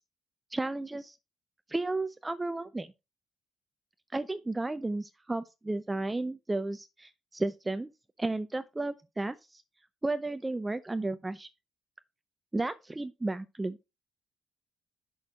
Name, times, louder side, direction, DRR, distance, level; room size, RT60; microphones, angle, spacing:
voice 1, 0.5-1.2 1.7-2.9 4.1-7.9 8.2-9.6 10.0-11.5 12.5-13.8, right 2 dB, 15° right, 0.5 m, -33 dB
6.3 x 6.2 x 5.2 m
cardioid pair, 90°, 0 cm